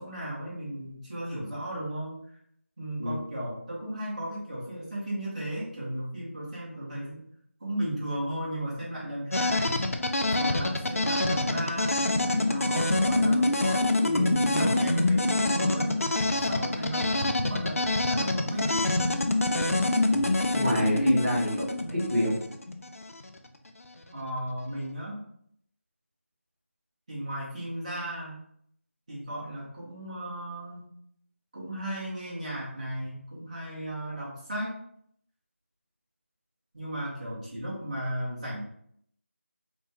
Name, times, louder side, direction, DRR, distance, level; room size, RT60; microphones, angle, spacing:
voice 1, 0.0-2.2 2.8-7.2 7.6-9.8 10.2-16.0 16.5-17.8 18.1-18.9 24.1-25.2 27.1-28.4 29.1-30.9 31.5-34.8 36.7-38.6, right 1 dB, 30° right, -7 dB, 1.6 m, -35 dB
sound 1, 9.3-23.2, left 2 dB, 80° left, 0.6 m, -26 dB
voice 2, 20.5-22.3, equal, 5° left, -22 dB, 0.4 m, -27 dB
4.0 x 3.6 x 2.9 m, 0.68 s
figure-of-eight pair, 175°, 8 cm